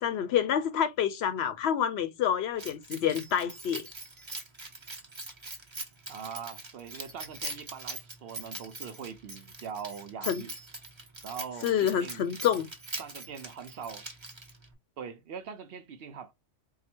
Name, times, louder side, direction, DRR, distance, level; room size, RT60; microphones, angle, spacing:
voice 1, 0.0-3.9 10.3-10.4 11.6-12.7, left 9 dB, 65° left, 0.7 m, -28 dB
Keys jangling, 2.6-14.7, right 2 dB, 25° right, 1.0 m, -42 dB
voice 2, 6.1-10.5 11.2-12.3 13.0-14.0 15.0-16.3, right 7 dB, 60° right, 0.7 m, -42 dB
4.6 x 2.1 x 4.3 m
omnidirectional pair, 1.2 m